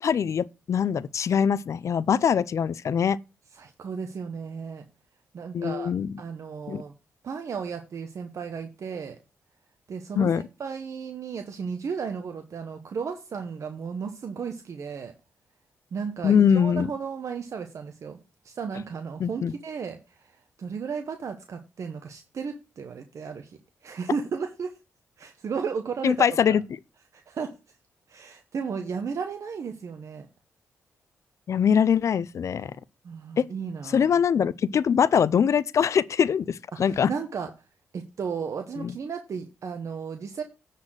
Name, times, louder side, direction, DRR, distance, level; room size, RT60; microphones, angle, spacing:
voice 1, 0.0-3.2 5.5-6.1 6.7-6.8 10.2-10.4 16.2-16.9 19.2-19.5 26.0-26.6 31.5-32.7 33.4-33.5 33.9-37.1 38.8-38.9, left 7 dB, 60° left, 0.5 m, -23 dB
voice 2, 3.5-4.8 5.3-5.9 6.2-6.9 7.2-9.2 9.9-15.1 15.9-18.2 18.4-24.8 25.2-26.3 27.1-27.5 28.1-30.3 33.0-34.1 36.7-37.5 37.9-40.4, right 6 dB, 60° right, 0.9 m, -34 dB
9.6 x 4.2 x 6.2 m
cardioid pair, 80°, 6 cm